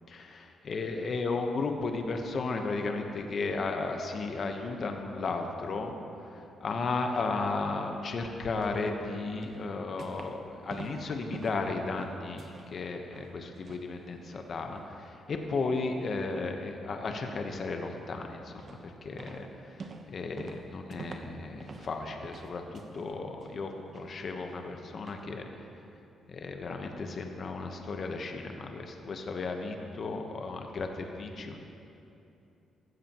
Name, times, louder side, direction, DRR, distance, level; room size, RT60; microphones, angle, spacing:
voice 1, 0.1-0.4 0.6-25.5 26.3-31.6, left 3 dB, 50° left, 4 dB, 1.0 m, -34 dB
sound 1, 6.8-7.3 8.6-8.8 9.4-10.4 10.7-12.7 13.0-13.9 14.2-14.9 15.3-15.4 15.8-16.1 17.0-17.2 17.7-18.1 18.6-18.9 19.2-22.0 22.2-23.1 23.4-24.0 24.5-24.6 25.1-25.2, right 4 dB, 45° right, 0.9 m, -47 dB
15.5 x 13.0 x 3.0 m, 2.9 s
cardioid pair, 100°, 0 cm